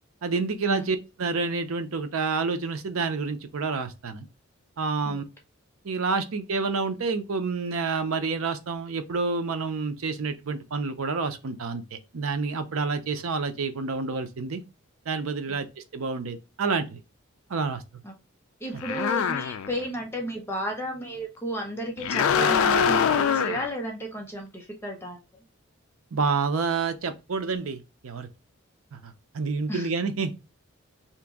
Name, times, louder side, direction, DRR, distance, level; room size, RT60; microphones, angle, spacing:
voice 1, 0.2-4.3 4.8-5.2 5.8-14.6 15.1-15.7 15.9-17.0 17.5-17.8 18.7-18.8 26.1-28.3 28.9-30.3, right 4 dB, 80° right, 0.6 m, -28 dB
voice 2, 18.6-25.2 29.7-29.9, right 1 dB, 10° left, 0.5 m, -33 dB
sound 1, 18.8-19.8 22.0-23.7, left 7 dB, 75° left, 0.3 m, -23 dB
2.9 x 2.5 x 3.5 m
head